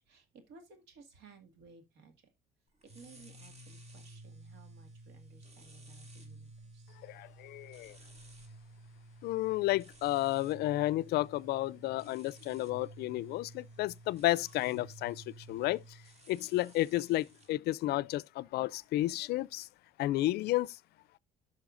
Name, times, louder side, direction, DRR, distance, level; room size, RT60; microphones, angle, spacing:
voice 1, 0.0-2.3 2.9-7.0, right 4 dB, 85° right, 2.0 m, -58 dB
sound 1, 2.8-17.5, right 2 dB, 40° right, 2.0 m, -53 dB
voice 2, 7.0-8.0 9.2-15.8 16.3-19.7 20.0-20.8, left 16 dB, 70° left, 0.4 m, -32 dB
13.5 x 5.6 x 2.5 m
cardioid pair, 110°, 17 cm